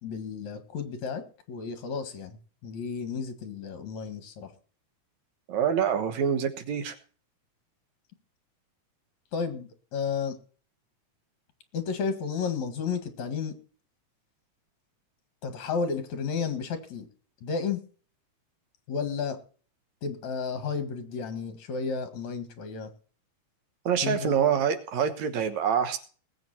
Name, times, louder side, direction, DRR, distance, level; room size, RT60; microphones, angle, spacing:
voice 1, 0.0-4.5 9.3-10.4 11.7-13.6 15.4-17.1 17.4-17.8 18.9-19.4 20.0-22.9 24.0-24.3, left 5 dB, 70° left, 9 dB, 3.1 m, -32 dB
voice 2, 5.5-7.0 23.9-26.0, right 8 dB, 70° right, 10 dB, 2.5 m, -26 dB
20.0 x 8.1 x 4.3 m, 0.41 s
omnidirectional pair, 3.5 m